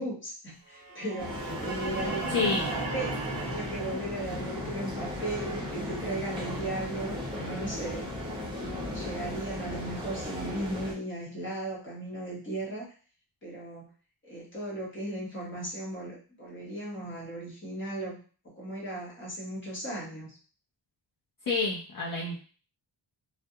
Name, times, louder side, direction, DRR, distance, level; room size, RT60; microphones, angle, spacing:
voice 1, 0.0-8.1 8.5-12.9 13.4-13.9 14.2-18.2 18.4-20.4, right 1 dB, 25° left, -5 dB, 0.9 m, -36 dB
sound 1, 0.8-8.9, right 3 dB, 50° right, 0.9 m, -39 dB
sound 2, 1.2-10.9, left 1 dB, 10° right, 0.6 m, -36 dB
voice 2, 21.5-22.4, left 4 dB, 50° left, -5 dB, 0.6 m, -28 dB
2.3 x 2.1 x 2.7 m, 0.39 s
wide cardioid pair, 150°, 46 cm